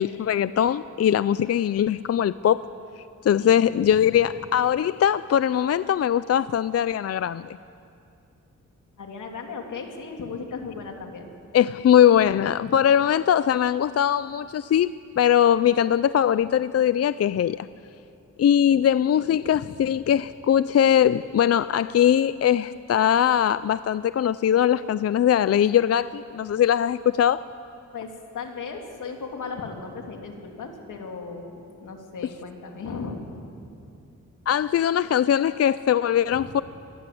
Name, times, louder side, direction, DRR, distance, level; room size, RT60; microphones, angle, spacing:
voice 1, 0.0-2.6 3.2-7.6 11.5-17.6 18.4-27.4 34.5-36.6, left 9 dB, 55° left, 15 dB, 0.5 m, -21 dB
voice 2, 3.4-4.1 9.0-11.3 18.7-18.9 19.4-19.9 27.9-33.2 36.3-36.5, left 4 dB, 85° left, 2 dB, 3.2 m, -37 dB
25.5 x 20.0 x 7.8 m, 2.6 s
wide cardioid pair, 110°, 30 cm